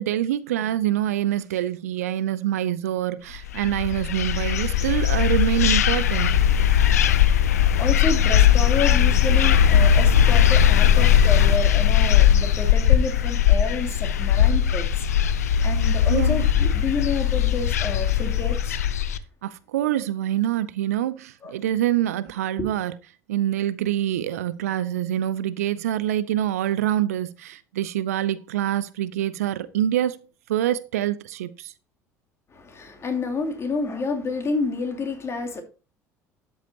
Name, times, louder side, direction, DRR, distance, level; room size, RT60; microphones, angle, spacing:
voice 1, 0.0-6.3 16.1-16.5 19.4-22.9 23.3-30.2 30.5-31.7, right 12 dB, 70° right, 0.6 m, -25 dB
sound 1, 3.5-19.2, left 9 dB, 75° left, 0.6 m, -19 dB
voice 2, 7.8-18.8 21.4-21.5 22.6-22.7 32.5-35.6, left 4 dB, 30° left, 2.8 m, -29 dB
12.5 x 8.1 x 2.8 m
figure-of-eight pair, 60°, 9 cm